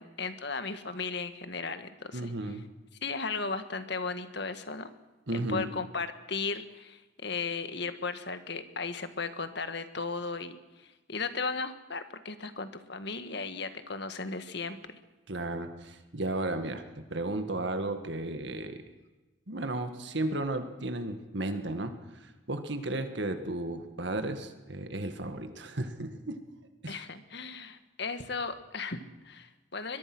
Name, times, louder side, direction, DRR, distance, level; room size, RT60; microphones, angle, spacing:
voice 1, 0.0-2.3 3.0-4.9 5.3-15.0 26.9-30.0, left 4 dB, 55° left, 10 dB, 1.8 m, -36 dB
voice 2, 2.1-2.6 5.3-5.7 15.3-18.9 19.5-26.4 26.8-27.0, right 2 dB, 60° right, 8 dB, 1.9 m, -34 dB
23.0 x 22.5 x 6.2 m, 1.1 s
head